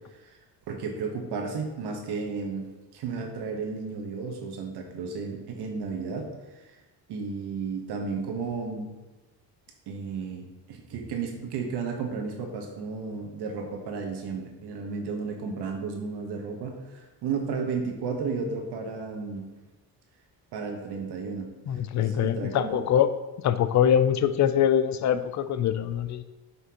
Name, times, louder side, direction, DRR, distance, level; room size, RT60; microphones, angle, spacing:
voice 1, 0.1-0.4 0.7-2.6 2.9-6.8 7.1-8.9 9.9-19.4 20.5-21.5 22.0-22.8, right 5 dB, 85° right, 3 dB, 1.3 m, -33 dB
voice 2, 21.7-23.1 23.4-26.2, left 9 dB, 45° left, 12 dB, 0.5 m, -23 dB
7.6 x 5.7 x 3.0 m, 1.1 s
cardioid pair, 125°, 39 cm